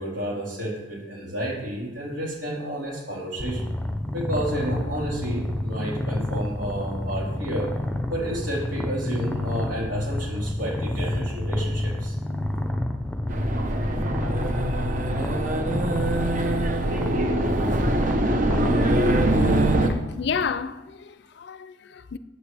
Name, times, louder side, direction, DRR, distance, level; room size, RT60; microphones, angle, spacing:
voice 1, 0.0-3.6 4.1-7.7 8.1-12.1, equal, 80° right, 4.1 m, -30 dB
Purr, 3.4-19.6, left 1 dB, 5° left, 0.6 m, -29 dB
sound 1, 13.3-19.9, right 1 dB, 40° right, 0.9 m, -23 dB
voice 2, 19.9-22.2, left 6 dB, 60° left, 0.4 m, -31 dB
14.5 x 8.2 x 3.4 m
head